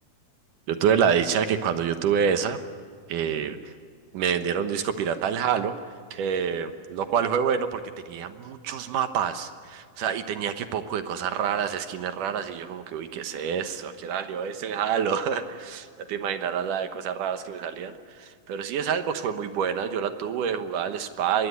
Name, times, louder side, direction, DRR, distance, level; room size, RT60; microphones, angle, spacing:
voice 1, 0.7-2.6 3.1-3.7 4.1-5.7 6.1-7.8 8.1-21.5, right 7 dB, 65° right, 9 dB, 2.4 m, -27 dB
24.5 x 21.5 x 9.5 m, 2.1 s
omnidirectional pair, 4.5 m